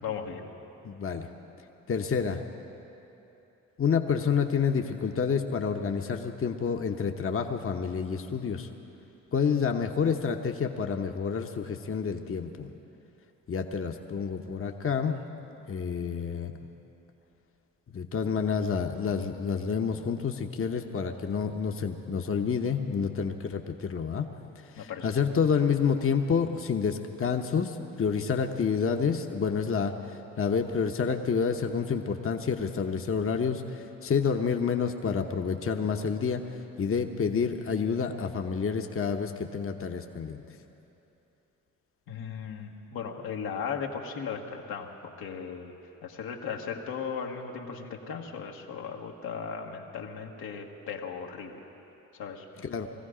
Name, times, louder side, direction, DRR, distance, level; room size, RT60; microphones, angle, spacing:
voice 1, 0.0-0.5 24.8-25.1 42.1-45.8 46.0-51.7 52.1-52.6, left 6 dB, 75° left, 1 dB, 1.3 m, -37 dB
voice 2, 0.8-1.3 1.9-2.4 3.8-8.7 9.3-12.7 13.5-15.2 15.7-16.7 17.9-24.3 24.6-36.4 36.8-40.4 52.6-52.9, left 6 dB, 35° left, 4 dB, 1.0 m, -29 dB
20.0 x 14.5 x 5.0 m, 2.9 s
supercardioid pair, 50°, 36 cm